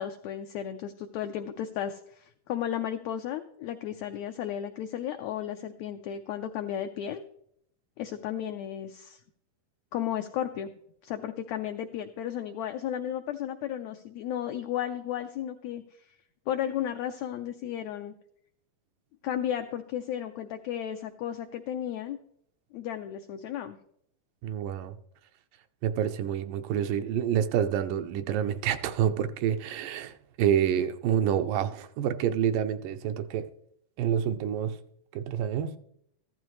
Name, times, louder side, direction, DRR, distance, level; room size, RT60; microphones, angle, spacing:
voice 1, 0.0-7.2 8.0-9.2 9.9-10.7 11.0-15.8 16.5-18.1 19.2-22.2 22.7-23.8, left 10 dB, 80° left, 1.6 m, -34 dB
voice 2, 24.4-25.0 25.8-33.5 34.0-34.8 35.1-35.8, right 9 dB, 80° right, 2.3 m, -28 dB
14.5 x 12.0 x 3.2 m
omnidirectional pair, 3.8 m